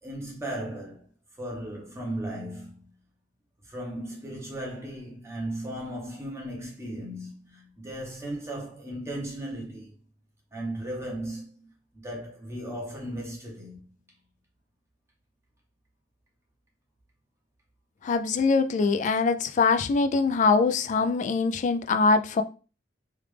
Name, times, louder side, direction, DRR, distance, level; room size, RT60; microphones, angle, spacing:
voice 1, 0.0-1.0 1.4-2.9 3.6-9.9 10.5-13.8, right 1 dB, 15° right, 0.9 m, -36 dB
voice 2, 18.0-22.4, left 4 dB, 45° left, 0.3 m, -23 dB
3.3 x 2.4 x 3.2 m
head